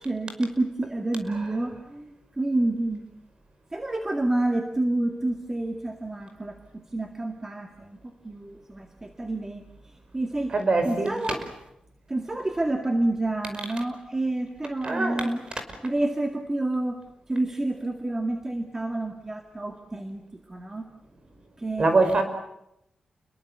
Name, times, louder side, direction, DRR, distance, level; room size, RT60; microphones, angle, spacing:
voice 1, 0.0-3.1 3.7-10.5 10.8-11.4 12.1-15.4 15.8-17.0 17.3-20.9 21.6-21.9, right 2 dB, 20° right, 5 dB, 2.1 m, -29 dB
voice 2, 10.5-11.1 14.8-15.3 21.8-22.2, right 3 dB, 40° right, 7 dB, 5.3 m, -23 dB
30.0 x 22.5 x 8.3 m, 0.81 s
wide cardioid pair, 140°, 2 cm